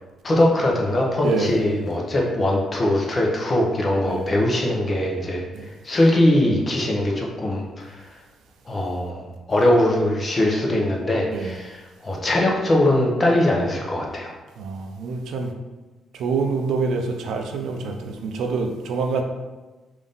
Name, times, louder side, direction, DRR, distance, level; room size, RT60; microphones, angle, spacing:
voice 1, 0.2-5.4 5.8-8.0 8.7-14.3, left 1 dB, 30° left, -1 dB, 0.8 m, -21 dB
voice 2, 14.6-15.5 16.1-19.2, right 4 dB, 80° right, 3 dB, 0.4 m, -26 dB
3.6 x 2.6 x 3.5 m, 1.2 s
cardioid pair, 90°, 0 cm